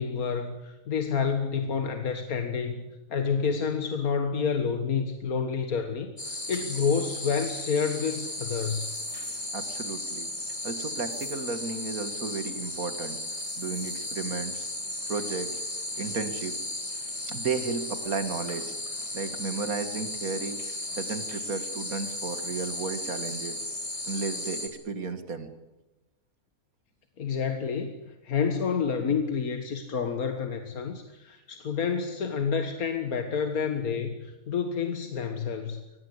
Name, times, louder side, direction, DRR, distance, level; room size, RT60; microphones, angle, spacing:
voice 1, 0.0-8.9 27.2-27.9 28.2-35.8, left 6 dB, 80° left, 7 dB, 2.0 m, -29 dB
sound 1, 6.2-24.7, left 1 dB, 25° left, 3.7 m, -35 dB
voice 2, 9.5-10.3 10.6-13.2 13.6-14.6 15.1-15.6 16.0-16.6 17.3-18.6 19.1-20.6 20.9-23.6 24.1-25.5, right 4 dB, 75° right, 10 dB, 2.4 m, -33 dB
23.5 x 19.5 x 8.3 m, 1.0 s
omnidirectional pair, 1.5 m